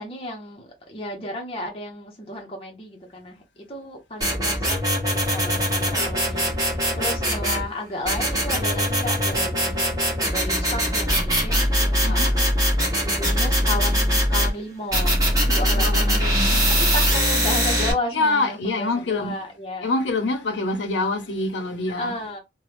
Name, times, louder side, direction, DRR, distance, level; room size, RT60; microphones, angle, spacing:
voice 1, 0.0-9.8 10.3-12.5 13.0-19.9 21.9-22.4, left 1 dB, 30° left, 0.7 m, -33 dB
sound 1, 4.2-7.6 8.1-14.5 14.9-17.9, equal, 20° right, 1.4 m, -22 dB
voice 2, 12.0-12.4 15.7-16.7 18.1-19.4 19.8-22.1, left 2 dB, 90° left, 0.8 m, -25 dB
3.1 x 2.2 x 3.3 m
head